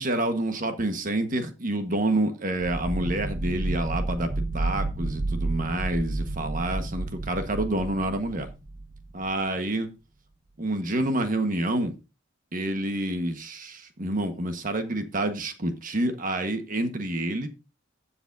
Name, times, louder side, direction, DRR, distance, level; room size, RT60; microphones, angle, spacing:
voice 1, 0.0-4.3 4.5-8.5 9.1-9.9 10.6-12.0 12.5-17.5, right 1 dB, 40° right, 1.3 m, -28 dB
sound 1, 2.6-9.3, right 2 dB, 25° right, 0.7 m, -31 dB
15.5 x 7.1 x 2.6 m
head